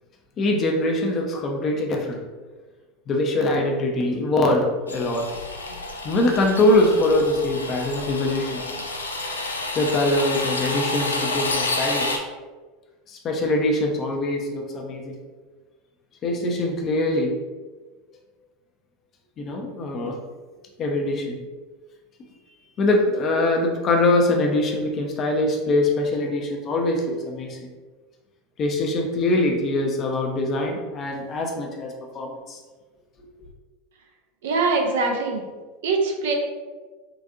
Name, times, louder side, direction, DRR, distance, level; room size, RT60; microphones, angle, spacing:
voice 1, 0.4-2.2 3.1-5.3 6.0-8.6 9.7-12.2 13.1-15.2 16.2-17.4 19.4-20.2 20.8-21.4 22.8-27.7 28.6-32.6, left 2 dB, 40° left, 1 dB, 0.6 m, -23 dB
sound 1, 4.9-12.2, left 2 dB, 85° left, 0.4 m, -29 dB
voice 2, 34.4-35.4 35.8-36.3, right 3 dB, 70° right, 2 dB, 0.5 m, -22 dB
3.9 x 2.5 x 2.4 m, 1.3 s
figure-of-eight pair, 80°, 0 cm